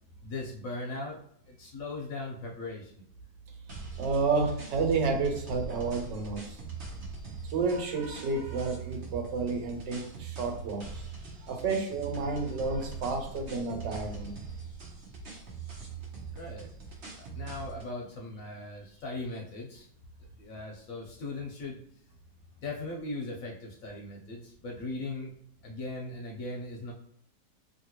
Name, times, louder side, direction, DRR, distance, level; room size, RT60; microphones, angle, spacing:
voice 1, 0.2-3.0 16.3-16.7 17.2-19.9 20.4-21.8 22.6-25.3 25.6-26.9, left 2 dB, 65° left, -1 dB, 0.9 m, -39 dB
sound 1, 3.7-17.9, right 5 dB, 50° right, 0.9 m, -42 dB
voice 2, 4.0-6.4 7.5-10.8 11.4-14.3, right 4 dB, 85° right, 3 dB, 1.4 m, -30 dB
2.9 x 2.7 x 2.8 m, 0.68 s
omnidirectional pair, 1.9 m